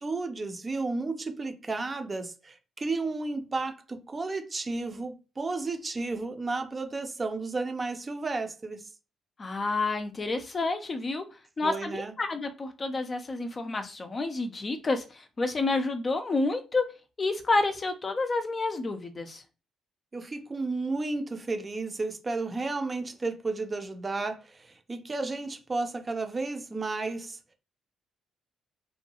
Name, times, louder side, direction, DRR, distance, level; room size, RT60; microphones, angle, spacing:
voice 1, 0.0-8.9 11.6-12.1 20.1-27.4, right 3 dB, 25° right, 0.5 m, -33 dB
voice 2, 9.4-11.2 11.6-16.8 17.2-19.4, left 3 dB, 35° left, 0.5 m, -29 dB
2.6 x 2.2 x 2.9 m
cardioid pair, 90°, 0 cm